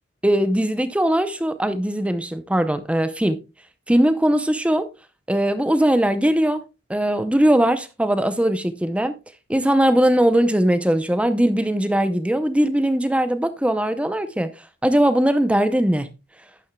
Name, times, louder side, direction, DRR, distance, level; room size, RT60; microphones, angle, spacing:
voice 1, 0.2-3.4 3.9-4.9 5.3-6.6 6.9-9.2 9.5-14.5 14.8-16.1, right 1 dB, 5° right, 0.6 m, -20 dB
11.5 x 9.6 x 2.3 m
head